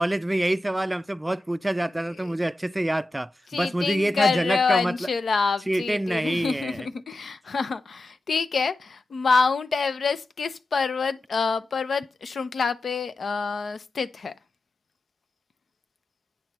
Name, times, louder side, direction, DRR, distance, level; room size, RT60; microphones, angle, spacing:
voice 1, 0.0-4.9 5.7-6.9, right 1 dB, 15° right, 0.4 m, -26 dB
voice 2, 2.0-2.3 3.5-14.3, left 5 dB, 75° left, 0.7 m, -26 dB
8.9 x 6.1 x 4.2 m
wide cardioid pair, 75°, 0 cm